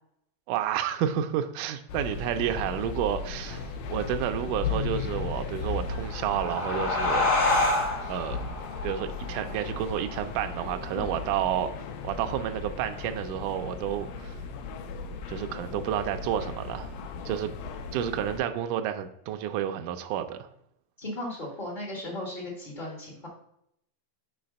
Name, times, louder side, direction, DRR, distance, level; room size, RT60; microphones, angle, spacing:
voice 1, 0.5-7.3 8.1-8.5 8.8-11.7 12.0-14.4 15.3-16.9 17.3-17.5 17.9-20.5, right 10 dB, 80° right, 1.9 m, -30 dB
sound 1, 1.9-18.4, left 5 dB, 85° left, 2.3 m, -36 dB
sound 2, 5.9-11.0, left 2 dB, 35° left, 0.8 m, -29 dB
voice 2, 10.9-11.2 21.0-23.3, left 1 dB, 60° left, 0.5 m, -36 dB
5.7 x 4.0 x 5.2 m
omnidirectional pair, 3.9 m